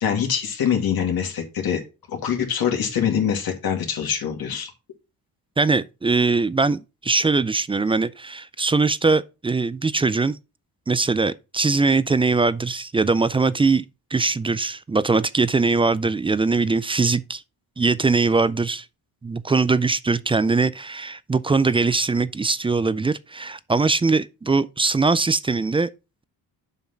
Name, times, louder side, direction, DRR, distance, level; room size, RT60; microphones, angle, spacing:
voice 1, 0.0-1.8 2.1-4.7, left 8 dB, 70° left, 2.4 m, -24 dB
voice 2, 5.6-10.4 10.9-17.4 17.8-18.8 19.2-25.9, right 3 dB, 15° right, 0.3 m, -21 dB
7.3 x 5.8 x 4.0 m
cardioid pair, 115°, 37 cm